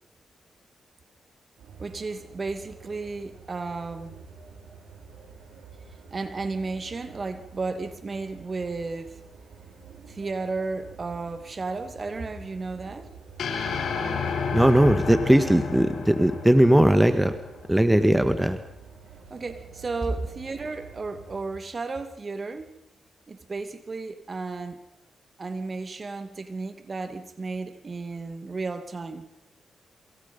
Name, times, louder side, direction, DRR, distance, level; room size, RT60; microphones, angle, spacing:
sound 1, 1.6-21.4, right 5 dB, 85° right, 6.1 m, -48 dB
voice 1, 1.8-4.2 6.1-9.1 10.1-13.1 19.3-22.7 23.3-24.8 25.4-29.2, right 3 dB, 40° right, 10 dB, 2.5 m, -33 dB
sound 2, 13.4-17.8, left 5 dB, 75° left, 4.9 m, -31 dB
voice 2, 14.5-17.3 17.7-18.6, right 1 dB, 10° right, 9 dB, 1.9 m, -19 dB
27.5 x 24.5 x 5.6 m, 0.81 s
cardioid pair, 60°, 0 cm